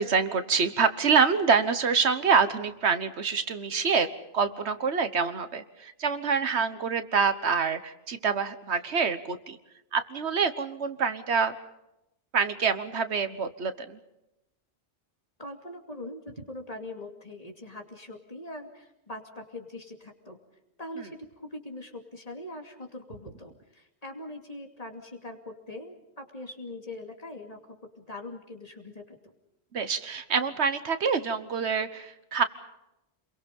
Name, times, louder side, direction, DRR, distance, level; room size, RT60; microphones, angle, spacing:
voice 1, 0.0-9.6 9.9-11.5 12.3-14.0 21.0-21.1 29.7-32.4, right 5 dB, 80° right, 11 dB, 1.5 m, -26 dB
voice 2, 15.4-20.4 20.8-29.3, left 2 dB, 35° left, 3 dB, 2.7 m, -42 dB
28.5 x 22.5 x 5.4 m, 0.90 s
omnidirectional pair, 1.1 m